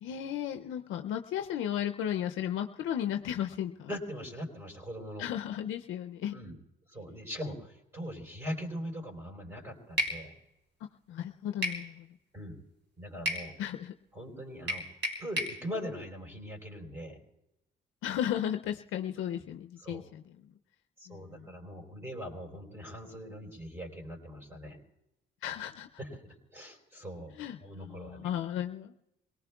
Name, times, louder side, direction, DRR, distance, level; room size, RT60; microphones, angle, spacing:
voice 1, 0.0-3.9 5.2-6.3 11.1-12.0 13.6-13.9 18.0-20.2 21.1-21.2 25.4-25.9 27.4-27.6 27.8-28.9, left 10 dB, 85° left, 6 dB, 0.5 m, -34 dB
voice 2, 3.9-5.2 6.3-6.6 6.9-10.3 12.3-12.6 13.0-13.5 14.1-14.8 15.2-17.2 19.8-20.1 21.0-24.8 26.0-26.2 26.5-28.3, equal, 10° right, 0 dB, 4.4 m, -41 dB
sound 1, 10.0-10.2 11.6-11.8 13.3-13.5 14.7-15.6, equal, 70° right, 3.7 m, -31 dB
27.5 x 18.5 x 2.3 m, 0.89 s
cardioid pair, 90°, 20 cm